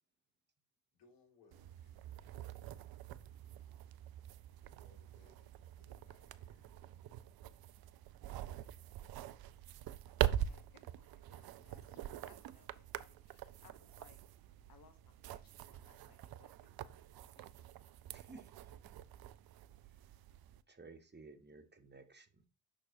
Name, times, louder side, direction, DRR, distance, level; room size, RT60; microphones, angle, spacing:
voice 1, 0.9-2.9 4.6-7.0, left 4 dB, 70° left, 2.1 m, -70 dB
sound 1, 1.5-20.6, right 12 dB, 55° right, 0.6 m, -44 dB
voice 2, 10.0-14.2 14.7-17.5, left 6 dB, 50° left, 1.2 m, -67 dB
voice 3, 18.1-18.7 20.7-22.5, right 3 dB, 25° right, 1.3 m, -56 dB
6.6 x 6.1 x 2.7 m
hypercardioid pair, 40°, 44 cm